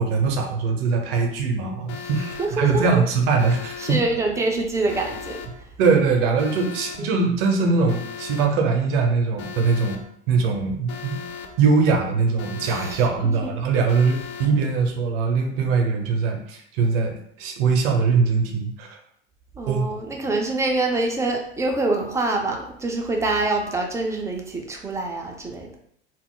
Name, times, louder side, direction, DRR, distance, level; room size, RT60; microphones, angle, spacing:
voice 1, 0.0-4.0 5.8-10.0 10.3-11.2 11.6-18.9 19.7-19.8, right 4 dB, 60° right, 4 dB, 0.7 m, -21 dB
Alarm, 1.9-2.5 3.4-4.0 4.9-5.5 6.4-7.0 7.9-8.5 9.4-10.0 10.9-11.5 12.4-13.0 13.9-14.5, left 7 dB, 45° left, 0.5 m, -37 dB
voice 2, 2.4-3.0 3.8-5.7 12.6-13.0 13.4-13.5 19.6-25.7, right 2 dB, 10° right, 1 dB, 0.4 m, -25 dB
2.3 x 2.0 x 3.6 m, 0.69 s
hypercardioid pair, 80°, 34 cm